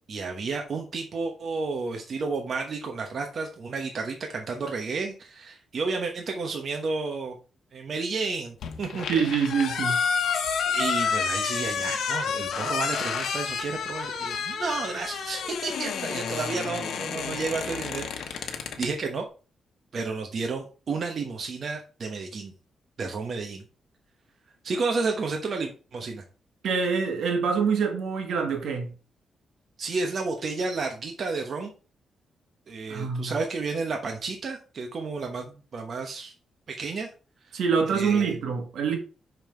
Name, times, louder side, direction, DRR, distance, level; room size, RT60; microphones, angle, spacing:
voice 1, 0.1-7.3 7.7-9.1 10.7-19.2 19.9-22.5 23.0-23.6 24.6-26.2 29.8-31.7 32.7-36.3 36.7-37.1 37.5-37.6 37.9-38.3, right 4 dB, 45° right, 1.1 m, -31 dB
sound 1, 8.6-18.9, left 6 dB, 75° left, 1.1 m, -29 dB
voice 2, 9.1-10.0 26.6-28.9 32.9-33.4 37.5-39.0, right 6 dB, 80° right, 1.8 m, -25 dB
5.7 x 5.5 x 4.4 m
wide cardioid pair, 140°, 0 cm